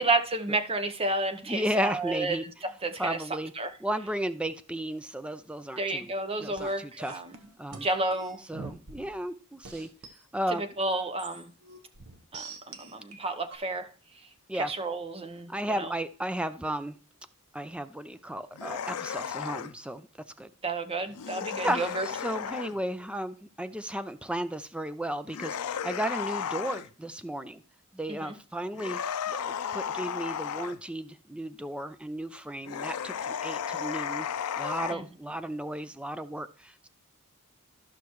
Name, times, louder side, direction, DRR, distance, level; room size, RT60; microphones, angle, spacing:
voice 1, 0.0-2.5 2.8-3.2 3.6-3.7 5.8-7.4 7.7-8.4 10.5-11.5 12.3-13.9 14.5-15.5 15.8-15.9 20.6-22.1 28.2-28.4 34.9-35.0, right 2 dB, 25° right, 8 dB, 0.8 m, -31 dB
voice 2, 1.5-2.4 3.0-3.5 3.8-6.1 6.4-7.1 7.6-7.9 8.5-9.9 10.3-10.7 14.5-14.7 15.5-17.0 17.5-20.1 20.4-20.5 21.6-27.6 27.9-29.0 29.3-34.3 34.6-36.9, right 1 dB, 5° right, 11 dB, 0.4 m, -34 dB
sound 1, 6.6-9.3 9.6-10.2 10.8-13.6, right 4 dB, 70° right, 1.1 m, -46 dB
sound 2, 18.5-19.8 21.1-22.8 25.3-26.9 28.7-30.8 32.7-34.9, left 8 dB, 90° left, 0.5 m, -34 dB
13.5 x 5.8 x 3.1 m, 0.40 s
head